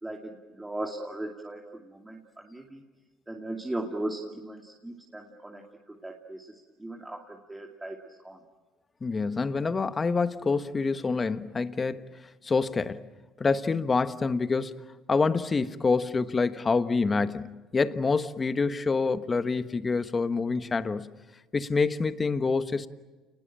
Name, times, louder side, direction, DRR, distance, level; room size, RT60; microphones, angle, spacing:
voice 1, 0.0-2.8 3.3-8.4, right 1 dB, 10° right, 2.7 m, -38 dB
voice 2, 9.0-12.1 12.4-13.0 13.4-14.7 15.1-21.1 21.5-22.9, left 4 dB, 25° left, 1.3 m, -27 dB
29.5 x 20.5 x 8.8 m
supercardioid pair, 90°, 0 cm